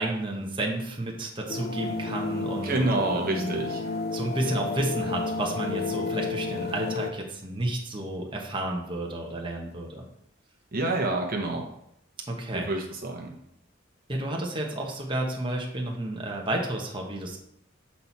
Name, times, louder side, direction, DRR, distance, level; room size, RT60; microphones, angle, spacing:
voice 1, 0.0-3.5 4.1-10.0 12.3-12.7 14.1-17.4, right 1 dB, 25° right, 0 dB, 1.1 m, -31 dB
sound 1, 1.5-7.1, left 3 dB, 55° left, 0.6 m, -32 dB
voice 2, 2.6-3.8 10.7-11.6 12.7-13.3, right 2 dB, 50° right, 1 dB, 0.9 m, -27 dB
7.6 x 4.2 x 4.4 m, 0.76 s
head